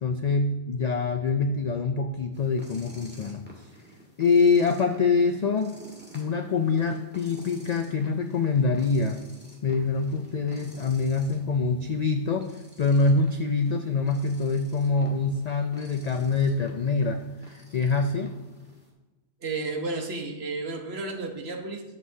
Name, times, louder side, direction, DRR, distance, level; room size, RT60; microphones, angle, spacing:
voice 1, 0.0-3.4 4.2-5.8 6.1-9.2 9.6-18.3, left 4 dB, 70° left, 6 dB, 0.4 m, -25 dB
sound 1, 2.3-18.9, equal, 10° right, 1.5 m, -51 dB
voice 2, 19.4-21.8, right 3 dB, 55° right, 3 dB, 1.2 m, -32 dB
11.0 x 7.7 x 2.7 m, 1.1 s
omnidirectional pair, 1.3 m